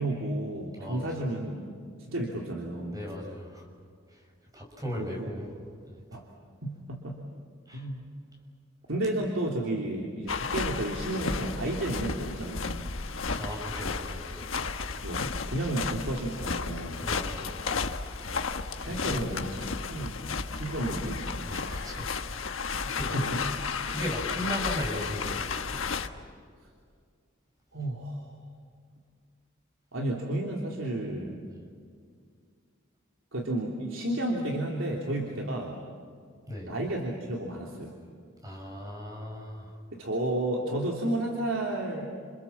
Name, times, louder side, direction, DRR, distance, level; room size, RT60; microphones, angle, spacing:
voice 1, 0.0-1.6 2.1-3.0 5.0-5.3 6.1-6.2 6.6-7.2 7.7-8.0 8.9-12.9 15.0-17.1 18.8-19.4 19.9-20.2 20.5-21.2 23.1-23.4 27.7-28.4 29.9-31.4 33.3-35.8 36.7-38.0 39.9-42.1, right 1 dB, 80° right, -1 dB, 3.3 m, -32 dB
voice 2, 0.8-1.3 2.9-3.7 4.1-4.3 4.5-5.5 7.7-7.9 13.3-14.6 17.0-17.6 18.9-19.8 21.4-23.6 23.8-25.8 31.4-31.6 36.5-36.7 38.4-39.8, equal, 20° right, 1 dB, 6.0 m, -38 dB
sound 1, 10.3-26.1, left 4 dB, 85° left, 1.3 m, -33 dB
29.0 x 28.0 x 7.3 m, 2.1 s
head